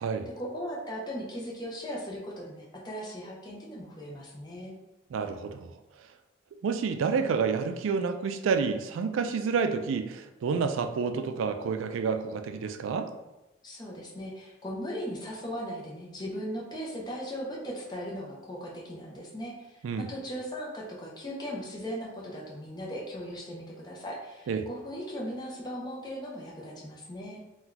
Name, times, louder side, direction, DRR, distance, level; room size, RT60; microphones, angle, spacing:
voice 1, 0.4-4.7 13.6-27.4, equal, 20° left, -4 dB, 0.6 m, -38 dB
voice 2, 5.1-5.7 6.6-13.1 19.8-20.1 24.5-24.7, right 5 dB, 85° right, 8 dB, 0.3 m, -29 dB
2.8 x 2.3 x 3.8 m, 0.99 s
head